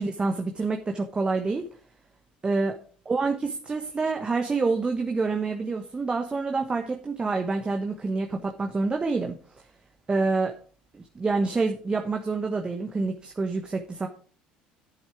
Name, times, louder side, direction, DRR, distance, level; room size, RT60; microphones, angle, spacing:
voice 1, 0.0-1.7 2.4-2.8 3.1-9.4 10.1-10.5 10.9-14.1, right 3 dB, 25° right, 4 dB, 1.2 m, -27 dB
9.1 x 7.4 x 4.9 m, 0.43 s
hypercardioid pair, 70°, 4 cm